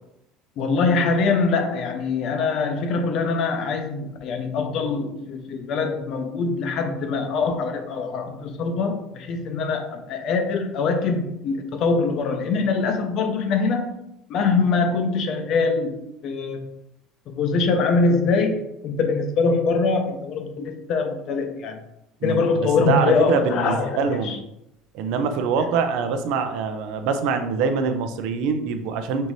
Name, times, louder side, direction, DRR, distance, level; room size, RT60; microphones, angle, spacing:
voice 1, 0.6-14.0 14.3-16.7 17.3-21.8 22.2-24.0 24.2-24.4, left 4 dB, 50° left, 5 dB, 0.7 m, -23 dB
voice 2, 22.8-24.4 24.9-29.3, right 5 dB, 70° right, 7 dB, 0.5 m, -24 dB
5.4 x 2.6 x 3.1 m, 0.83 s
cardioid pair, 145°, 0 cm